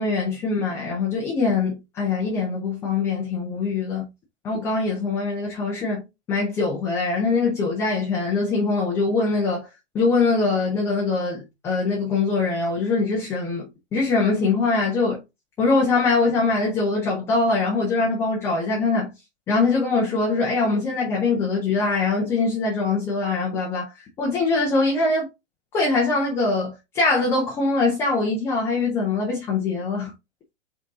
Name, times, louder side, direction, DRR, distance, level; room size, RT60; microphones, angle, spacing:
voice 1, 0.0-4.1 4.4-9.7 9.9-15.2 15.6-19.1 19.5-25.3 25.7-30.1, left 3 dB, 5° left, 0.4 m, -23 dB
5.0 x 2.7 x 3.7 m
figure-of-eight pair, 115°, 37 cm